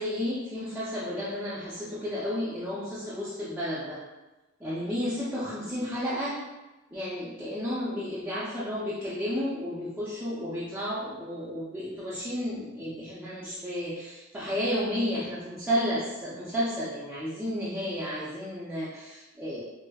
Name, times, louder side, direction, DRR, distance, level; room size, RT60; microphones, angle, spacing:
voice 1, 0.0-4.0 4.6-6.4 6.9-19.6, equal, 10° right, -11 dB, 0.5 m, -32 dB
4.8 x 2.1 x 2.3 m, 1.1 s
head